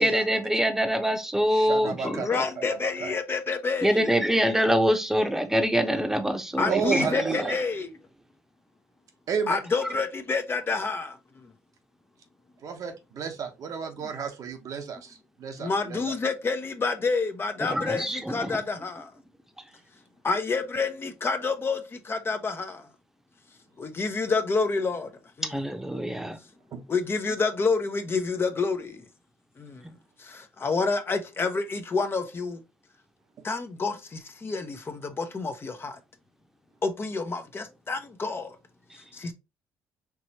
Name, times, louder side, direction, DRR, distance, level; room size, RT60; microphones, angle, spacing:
voice 1, 0.0-2.4 3.8-7.5 9.8-9.9 17.6-18.6 25.4-26.4, equal, 5° right, 0.9 m, -25 dB
voice 2, 1.5-3.1 6.7-7.6 9.3-9.6 12.6-16.1 26.7-26.8, right 6 dB, 60° right, 1.0 m, -32 dB
voice 3, 2.0-4.0 6.6-7.9 9.5-11.2 15.6-19.1 20.2-22.8 23.8-25.1 25.4-25.6 26.9-29.0 29.6-29.8 30.2-32.6 33.4-36.0 36.8-38.5 39.1-39.3, left 4 dB, 35° left, 0.8 m, -28 dB
4.7 x 3.0 x 2.8 m
supercardioid pair, 70°, 7 cm